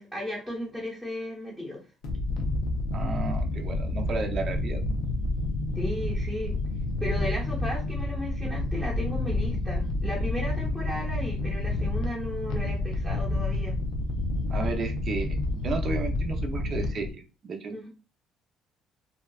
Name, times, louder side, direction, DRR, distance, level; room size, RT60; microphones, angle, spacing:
voice 1, 0.0-1.8 5.8-6.5 7.0-13.8 17.7-17.9, left 1 dB, ahead, -6 dB, 0.8 m, -35 dB
sound 1, 2.0-17.1, left 2 dB, 85° left, 0.5 m, -29 dB
voice 2, 2.9-5.0 14.5-15.4 15.6-17.9, right 4 dB, 50° right, 4 dB, 0.5 m, -33 dB
2.7 x 2.3 x 2.3 m, 0.32 s
cardioid pair, 100°, 0 cm